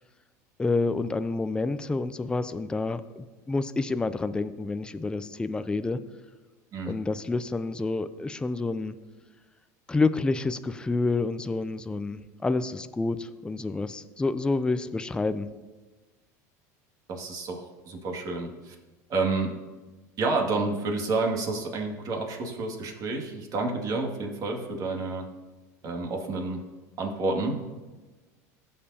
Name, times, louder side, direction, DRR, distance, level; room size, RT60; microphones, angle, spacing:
voice 1, 0.6-6.0 6.8-9.0 9.9-15.5, left 3 dB, 10° left, 12 dB, 0.5 m, -28 dB
voice 2, 17.1-18.7 19.1-19.5 20.2-25.3 25.8-26.6 27.0-27.6, right 3 dB, 45° right, 1 dB, 2.2 m, -29 dB
16.5 x 6.8 x 2.8 m, 1.2 s
supercardioid pair, 100°, 9 cm